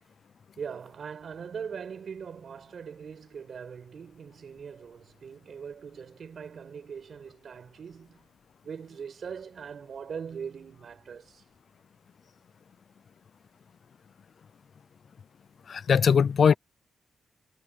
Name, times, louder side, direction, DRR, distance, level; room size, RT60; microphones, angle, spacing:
voice 1, 0.6-8.3 8.6-11.4, right 6 dB, 60° right, 5.9 m, -41 dB
voice 2, 15.7-16.5, left 6 dB, 60° left, 0.5 m, -20 dB
cardioid pair, 75°, 0 cm